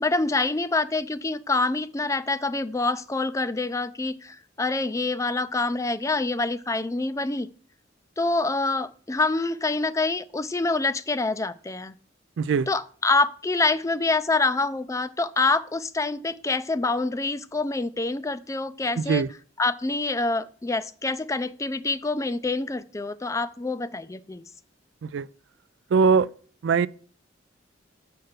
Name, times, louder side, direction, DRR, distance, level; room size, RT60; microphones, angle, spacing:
voice 1, 0.0-7.5 8.2-11.9 12.7-19.2 19.6-24.5, left 3 dB, 15° left, 0.4 m, -26 dB
voice 2, 12.4-12.7 19.0-19.3 25.0-25.3 25.9-26.3 26.6-26.9, right 5 dB, 70° right, 0.3 m, -21 dB
7.7 x 5.7 x 6.6 m
head